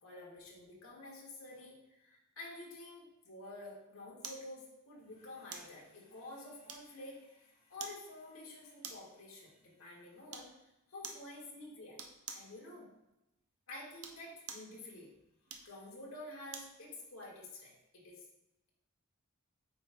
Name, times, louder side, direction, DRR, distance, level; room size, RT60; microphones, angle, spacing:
voice 1, 0.0-10.5 10.9-12.0 12.3-12.9 13.7-15.1 15.6-18.2, left 2 dB, 75° left, -3 dB, 1.8 m, -50 dB
sound 1, 4.2-4.5 5.5-5.8 6.7-7.1 7.8-8.0 8.8-9.2 10.3-10.5 11.0-11.3 12.0-12.5 13.9-14.7 15.5-16.8 17.2-17.3, right 6 dB, 85° right, 0.7 m, -47 dB
8.4 x 5.2 x 2.2 m, 0.91 s
head